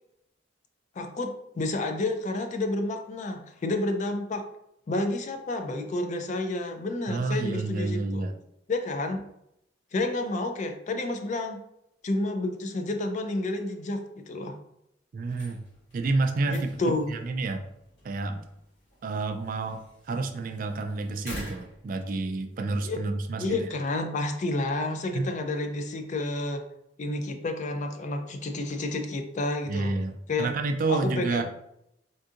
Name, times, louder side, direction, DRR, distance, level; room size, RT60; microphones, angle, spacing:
voice 1, 1.0-4.5 4.9-8.3 8.7-9.2 9.9-11.6 12.0-14.6 16.5-17.1 22.8-23.0 23.4-26.6 27.0-29.9 30.3-30.5 30.9-31.4, left 2 dB, 40° left, 6 dB, 0.3 m, -30 dB
voice 2, 7.1-8.4 15.1-15.6 15.9-16.8 17.1-17.6 18.0-18.4 19.0-23.7 25.1-25.3 29.7-31.4, right 3 dB, 45° right, 6 dB, 0.3 m, -29 dB
sound 1, 15.2-22.7, left 1 dB, 75° left, 1.3 m, -47 dB
3.7 x 2.6 x 2.4 m, 0.79 s
head